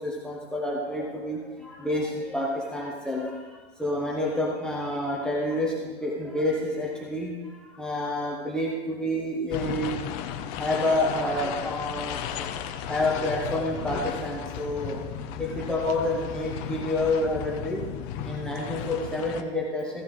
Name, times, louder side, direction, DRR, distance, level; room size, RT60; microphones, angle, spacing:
voice 1, 0.0-3.3 3.8-7.3 7.8-10.0 10.6-12.5 12.9-15.0 15.4-17.8 18.2-20.0, left 1 dB, ahead, -3 dB, 1.1 m, -28 dB
sound 1, 9.5-19.4, left 9 dB, 30° left, 0.7 m, -35 dB
15.0 x 7.2 x 4.0 m, 1.3 s
hypercardioid pair, 135°, 32 cm